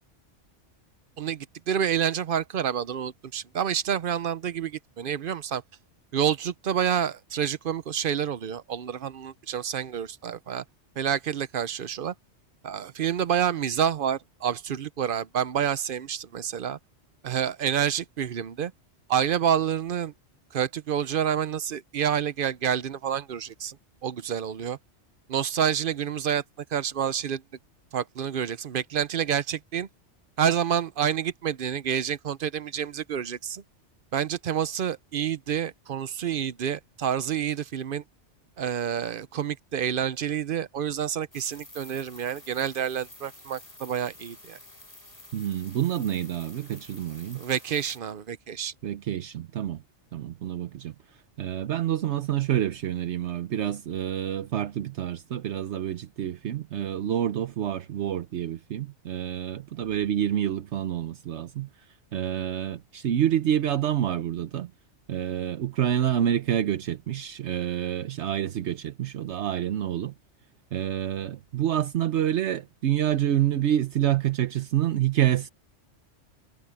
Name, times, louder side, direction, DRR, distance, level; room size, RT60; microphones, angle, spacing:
voice 1, 1.2-5.6 6.1-10.6 11.0-12.1 12.6-16.8 17.2-18.7 19.1-20.1 20.5-23.8 24.0-24.8 25.3-26.4 26.7-27.4 27.9-29.9 30.4-33.6 34.1-38.0 38.6-44.6 47.3-48.7, right 8 dB, 55° right, 0.8 m, -28 dB
sound 1, 41.3-48.0, left 1 dB, 50° left, 6.6 m, -49 dB
voice 2, 45.3-47.4 48.8-49.8 50.1-50.9 51.4-61.7 62.1-64.7 65.1-70.1 70.7-75.5, right 11 dB, 75° right, 1.0 m, -27 dB
omnidirectional pair, 1.2 m